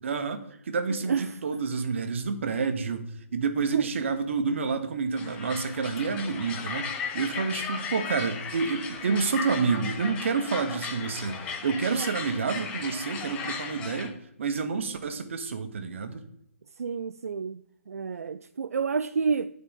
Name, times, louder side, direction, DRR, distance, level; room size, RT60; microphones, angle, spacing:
voice 1, 0.0-3.0 3.3-6.9 7.1-11.4 11.6-14.1 14.4-16.2, right 5 dB, 55° right, 1.0 m, -29 dB
sound 1, 5.1-14.1, left 5 dB, 15° left, 0.7 m, -36 dB
voice 2, 16.8-17.6 17.9-19.5, right 5 dB, 85° right, 0.4 m, -28 dB
9.1 x 4.2 x 5.2 m
hypercardioid pair, 155°, 8 cm